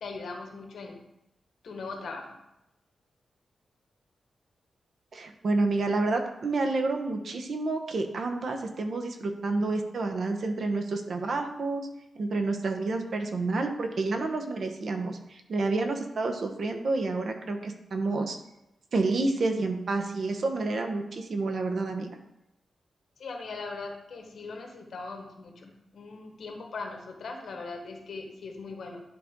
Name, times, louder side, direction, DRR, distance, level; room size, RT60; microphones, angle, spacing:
voice 1, 0.0-1.0 1.6-2.4 23.2-29.0, left 3 dB, 75° left, 2 dB, 1.4 m, -40 dB
voice 2, 5.1-11.8 12.2-18.4 18.9-22.1, right 3 dB, 55° right, 4 dB, 0.9 m, -29 dB
11.0 x 3.9 x 3.7 m, 0.88 s
wide cardioid pair, 115°, 0 cm